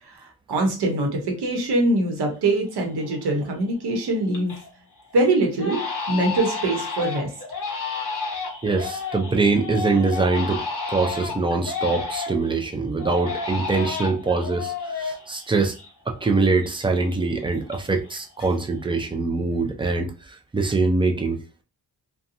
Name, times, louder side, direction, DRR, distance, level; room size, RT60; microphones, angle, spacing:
voice 1, 0.1-4.6 5.1-7.3, right 2 dB, 75° right, 1.0 m, -23 dB
Crying sobbing, 2.4-2.5 3.0-3.4 3.8-4.7 5.0-5.1 5.6-12.5 13.0-16.3 16.6-18.1 18.4-18.9, left 4 dB, 50° left, 1.1 m, -31 dB
voice 2, 8.6-10.6 10.9-15.7 16.1-21.4, right 3 dB, 15° right, 0.3 m, -23 dB
2.7 x 2.2 x 2.6 m
wide cardioid pair, 110°, 40 cm